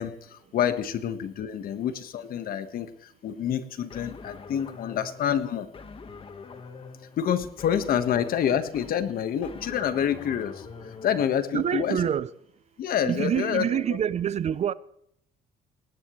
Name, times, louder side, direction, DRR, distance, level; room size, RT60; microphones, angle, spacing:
voice 1, 0.0-5.7 7.2-10.7 11.0-12.0 12.8-14.0, left 9 dB, 60° left, 1.4 m, -28 dB
sound 1, 3.9-11.2, left 5 dB, 35° left, 1.4 m, -44 dB
voice 2, 11.5-12.3 13.0-14.7, right 9 dB, 40° right, 0.5 m, -26 dB
19.5 x 17.0 x 3.2 m
cardioid pair, 110°, 17 cm